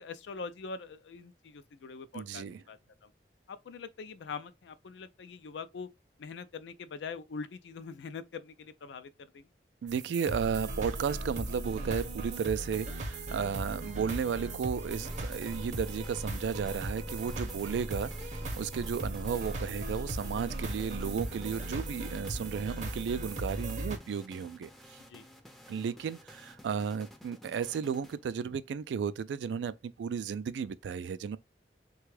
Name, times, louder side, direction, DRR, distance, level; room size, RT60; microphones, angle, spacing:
voice 1, 0.0-3.1 3.5-5.9 6.2-9.5 25.1-25.3 25.7-25.8, left 5 dB, 85° left, 0.4 m, -43 dB
voice 2, 2.1-2.6 9.8-25.0 25.7-31.4, right 6 dB, 85° right, 0.3 m, -34 dB
sound 1, 9.9-24.0, right 1 dB, 45° right, 0.6 m, -38 dB
sound 2, 14.9-28.5, left 1 dB, ahead, 0.4 m, -54 dB
3.4 x 2.3 x 3.2 m
head